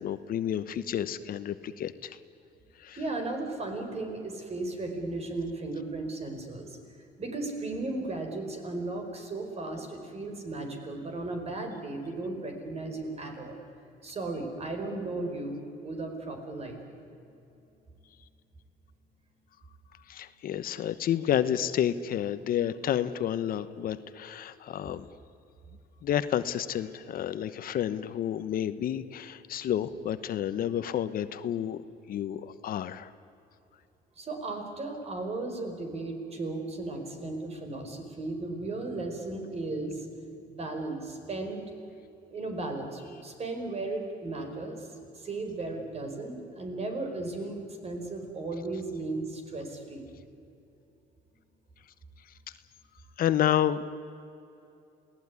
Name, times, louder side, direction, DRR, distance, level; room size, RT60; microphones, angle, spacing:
voice 1, 0.0-2.2 2.8-3.0 20.1-25.1 26.0-31.8 32.1-33.1 53.2-53.8, left 10 dB, 60° left, 12 dB, 1.1 m, -30 dB
voice 2, 3.0-6.8 7.2-13.6 14.0-17.0 34.1-40.2 40.5-41.6 42.3-44.9 45.1-50.0, right 2 dB, 40° right, 4 dB, 5.1 m, -35 dB
28.0 x 18.0 x 9.7 m, 2.8 s
cardioid pair, 110°, 17 cm